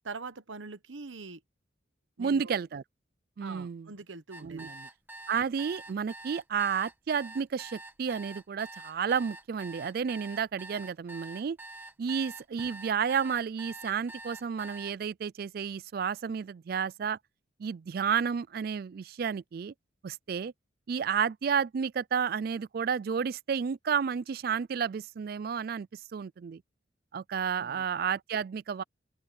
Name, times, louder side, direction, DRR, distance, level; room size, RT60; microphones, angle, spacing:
voice 1, 0.0-1.4 2.2-2.6 3.4-4.9 27.5-27.9, right 4 dB, 80° right, 1.1 m, -43 dB
voice 2, 2.2-2.8 3.4-3.9 4.4-4.7 5.3-11.6 12.0-17.2 17.6-19.7 20.0-20.5 20.9-26.6 27.1-28.8, right 7 dB, 50° right, 0.3 m, -31 dB
sound 1, 4.3-14.9, right 1 dB, 10° right, 1.3 m, -46 dB
open air
head